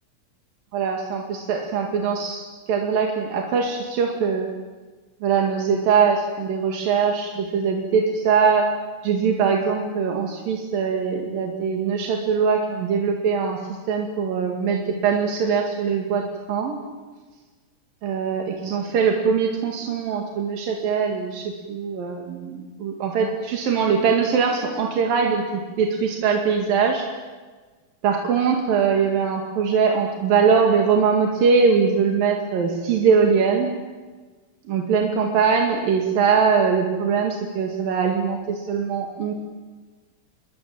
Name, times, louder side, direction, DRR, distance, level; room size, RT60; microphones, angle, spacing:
voice 1, 0.7-4.5 5.2-8.7 9.0-13.6 13.9-16.7 18.0-27.1 28.0-33.7 34.7-39.3, right 6 dB, 90° right, 1 dB, 3.9 m, -22 dB
29.5 x 21.5 x 7.7 m, 1.3 s
omnidirectional pair, 3.9 m